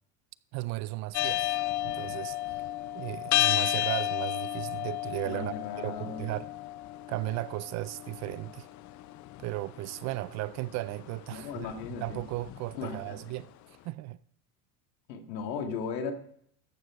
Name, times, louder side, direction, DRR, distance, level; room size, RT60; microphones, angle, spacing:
voice 1, 0.5-1.6 1.8-2.6 2.9-6.5 7.1-8.7 9.4-11.7 12.0-13.5 13.8-14.2, right 18 dB, 35° right, 0.4 m, -35 dB
sound 1, 1.1-13.3, left 14 dB, 35° left, 0.6 m, -33 dB
voice 2, 5.3-6.3 11.3-12.2 12.7-13.3 15.1-16.1, left 6 dB, 80° left, 2.2 m, -37 dB
14.0 x 9.5 x 4.9 m
supercardioid pair, 110°, 49 cm